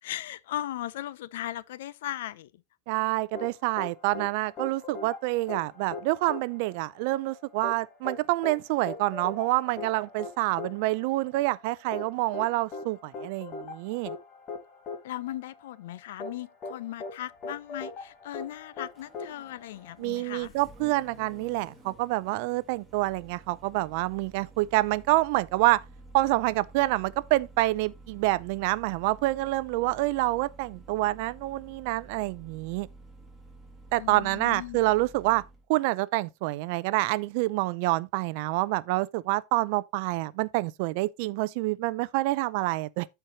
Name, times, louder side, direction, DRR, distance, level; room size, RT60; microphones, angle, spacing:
voice 1, 0.0-2.6 15.0-20.5 34.0-34.8, left 13 dB, 90° left, 0.5 m, -37 dB
voice 2, 2.9-14.2 20.0-25.8 26.1-32.9 33.9-35.4 35.7-43.1, right 19 dB, 60° right, 0.4 m, -27 dB
sound 1, 3.3-20.2, left 3 dB, 30° left, 1.7 m, -41 dB
Engine starting, 17.3-35.7, right 2 dB, ahead, 1.4 m, -51 dB
13.5 x 4.6 x 2.8 m
supercardioid pair, 160°, 0 cm